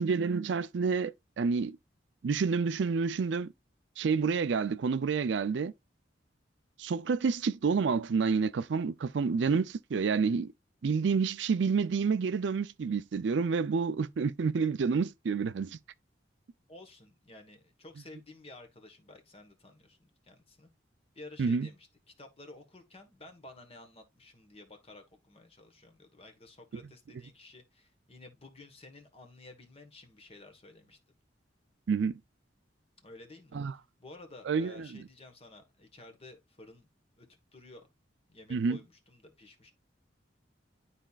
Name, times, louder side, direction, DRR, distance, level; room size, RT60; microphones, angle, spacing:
voice 1, 0.0-1.8 2.2-3.5 4.0-5.7 6.8-10.5 10.8-15.8 21.4-21.7 31.9-32.2 33.5-33.7 34.5-34.9 38.5-38.8, right 5 dB, 70° right, 0.4 m, -29 dB
voice 2, 16.7-20.7 21.1-21.9 22.2-31.0 33.0-33.6 34.0-36.9 37.2-37.3 37.5-37.9 38.3-39.7, left 2 dB, 30° left, 1.3 m, -52 dB
11.5 x 4.2 x 2.4 m
head